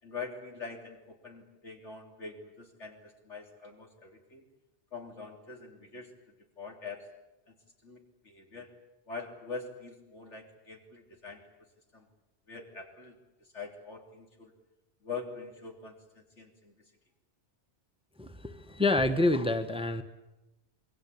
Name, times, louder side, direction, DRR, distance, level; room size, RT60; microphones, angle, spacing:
voice 1, 0.0-4.5 4.9-7.1 7.5-7.6 7.8-8.7 9.1-11.4 11.9-12.1 12.5-14.5 15.0-16.7, left 4 dB, 75° left, 2 dB, 4.0 m, -44 dB
voice 2, 18.2-20.0, left 2 dB, 5° right, 9 dB, 1.2 m, -27 dB
27.0 x 21.5 x 8.5 m, 0.98 s
omnidirectional pair, 1.2 m